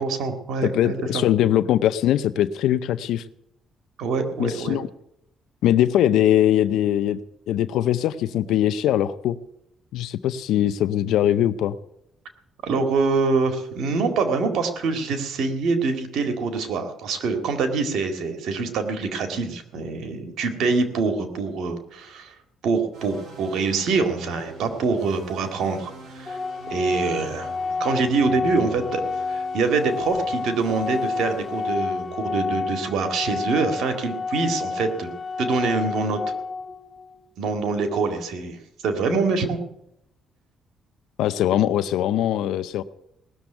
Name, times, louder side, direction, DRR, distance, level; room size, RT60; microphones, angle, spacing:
voice 1, 0.0-1.2 4.0-4.8 12.6-22.3 22.6-26.4 26.7-27.5 27.8-29.0 29.3-35.1 35.4-36.2 37.4-38.6 38.8-39.6, right 4 dB, 80° right, 7 dB, 2.0 m, -25 dB
voice 2, 0.6-3.2 4.4-4.9 5.6-7.2 7.5-9.4 9.9-11.7 41.2-42.8, left 11 dB, 85° left, 12 dB, 0.6 m, -21 dB
sound 1, 22.9-32.2, right 1 dB, 55° right, 7.2 m, -44 dB
Organ, 26.3-37.2, left 4 dB, 25° left, 1.1 m, -30 dB
18.0 x 7.0 x 9.0 m, 0.79 s
cardioid pair, 90°, 0 cm